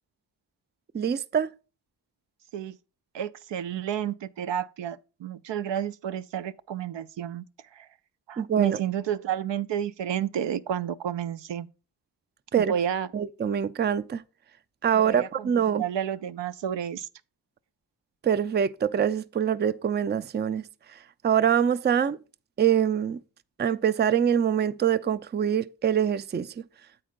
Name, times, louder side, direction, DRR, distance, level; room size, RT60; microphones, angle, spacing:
voice 1, 0.9-1.5 8.4-8.8 12.5-12.7 13.1-14.2 14.8-15.8 18.2-20.7 21.2-22.2 22.6-23.2 23.6-26.5, right 8 dB, 25° right, 0.3 m, -24 dB
voice 2, 3.1-7.4 7.7-7.9 8.3-11.7 12.6-13.1 14.9-15.5 15.8-17.1, right 9 dB, 85° right, 0.5 m, -31 dB
8.5 x 4.4 x 5.0 m
wide cardioid pair, 80°, 43 cm